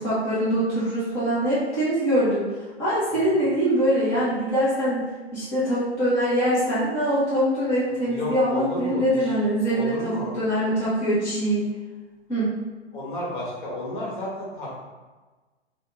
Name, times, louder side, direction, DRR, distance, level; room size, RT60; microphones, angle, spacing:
voice 1, 0.0-2.5 2.8-5.0 5.3-11.6 12.3-12.6, equal, 10° left, -10 dB, 0.4 m, -23 dB
voice 2, 8.0-9.3 9.7-10.3 12.9-14.8, left 1 dB, 45° left, -5 dB, 1.2 m, -32 dB
4.4 x 2.0 x 3.2 m, 1.3 s
figure-of-eight pair, 120°, 34 cm